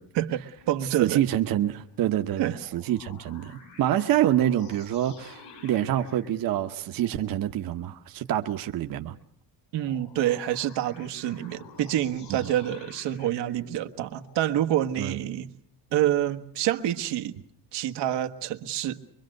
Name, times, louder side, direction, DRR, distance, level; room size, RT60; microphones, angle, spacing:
voice 1, 0.1-1.2 2.4-2.6 9.7-15.5 15.9-17.4 17.7-19.0, right 12 dB, 85° right, 1.5 m, -27 dB
sound 1, 0.6-2.2 2.5-7.3 9.7-14.6, left 4 dB, 75° left, 6.7 m, -50 dB
voice 2, 1.0-9.2 15.0-15.2, right 12 dB, 55° right, 1.1 m, -26 dB
24.0 x 24.0 x 6.5 m
cardioid pair, 165°, 41 cm